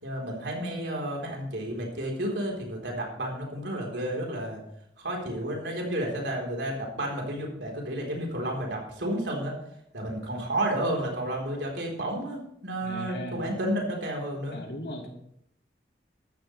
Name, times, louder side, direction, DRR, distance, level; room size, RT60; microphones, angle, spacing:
voice 1, 0.0-4.6 5.0-9.6 9.9-14.6, right 1 dB, 90° right, 0 dB, 3.8 m, -31 dB
voice 2, 12.8-13.5 14.5-15.1, left 1 dB, 60° left, 2 dB, 2.3 m, -37 dB
14.5 x 12.0 x 3.2 m, 0.74 s
head